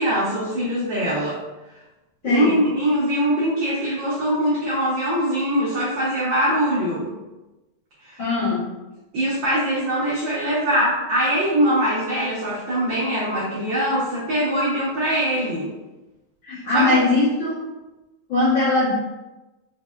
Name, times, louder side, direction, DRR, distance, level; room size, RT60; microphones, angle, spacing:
voice 1, 0.0-1.4 2.2-7.1 8.0-8.2 9.1-15.7 16.5-17.0, equal, 90° right, -8 dB, 1.0 m, -22 dB
voice 2, 2.2-2.6 8.2-8.7 16.4-17.7 18.3-18.9, left 2 dB, 85° left, -9 dB, 1.0 m, -20 dB
5.8 x 2.1 x 2.2 m, 1.1 s
omnidirectional pair, 3.3 m